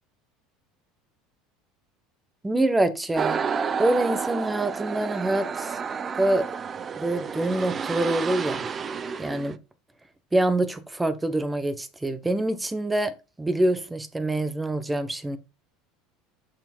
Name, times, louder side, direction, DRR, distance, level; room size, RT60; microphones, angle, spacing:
voice 1, 2.4-3.4 3.8-5.8 6.2-6.5 6.9-8.7 9.2-9.6 10.3-13.1 13.4-15.4, right 1 dB, 10° right, 1.2 m, -25 dB
sound 1, 3.2-9.6, right 6 dB, 35° right, 0.7 m, -30 dB
6.8 x 5.8 x 4.5 m
hypercardioid pair, 85°, 0 cm